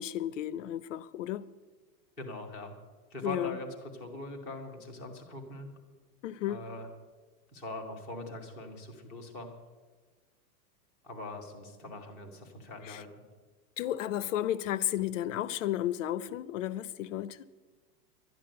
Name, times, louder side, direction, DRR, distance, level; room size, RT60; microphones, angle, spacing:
voice 1, 0.0-1.5 3.2-3.5 6.2-6.6 12.9-13.0 13.8-17.4, left 12 dB, 50° left, 0.6 m, -33 dB
voice 2, 2.2-2.7 3.1-5.7 6.4-6.9 7.5-9.5 11.0-13.1, left 2 dB, ahead, 0.5 m, -42 dB
12.0 x 10.5 x 7.6 m
supercardioid pair, 175°, 48 cm